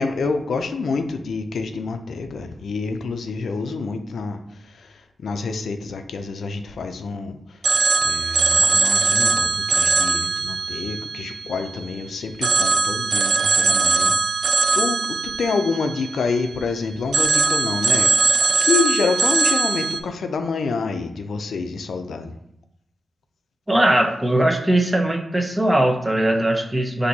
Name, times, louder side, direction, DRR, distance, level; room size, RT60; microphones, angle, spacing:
voice 1, 0.0-7.6 8.0-14.1 14.7-18.1 18.6-22.3 26.8-27.0, left 4 dB, 80° left, 7 dB, 0.4 m, -27 dB
Telephone, 7.6-11.9 12.4-16.6 17.1-20.0, right 4 dB, 80° right, 0.3 m, -20 dB
voice 2, 23.7-27.1, right 1 dB, 15° right, 3 dB, 0.7 m, -20 dB
4.3 x 2.6 x 3.9 m, 0.77 s
cardioid pair, 65°, 0 cm